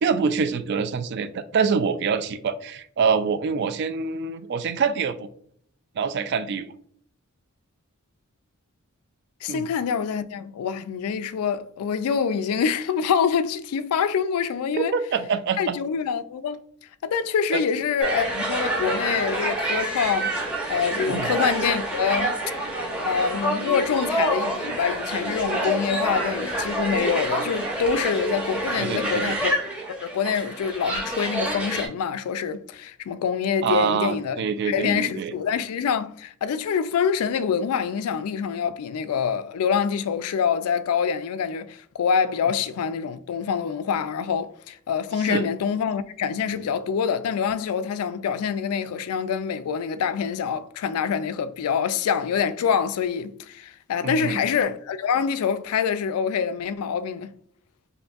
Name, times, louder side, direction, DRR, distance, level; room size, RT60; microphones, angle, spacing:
voice 1, 0.0-5.3 6.0-6.7 9.5-9.7 14.7-15.8 17.5-17.6 21.1-21.3 28.8-29.4 33.6-35.3 45.2-45.4 54.0-54.4, right 5 dB, 50° right, 0.3 m, -25 dB
voice 2, 9.4-14.9 15.6-16.6 17.0-20.4 20.7-22.4 23.0-29.6 30.0-57.3, left 6 dB, 80° left, 0.3 m, -25 dB
sound 1, 18.0-31.9, right 1 dB, 5° right, 0.8 m, -27 dB
5.0 x 2.6 x 2.3 m
head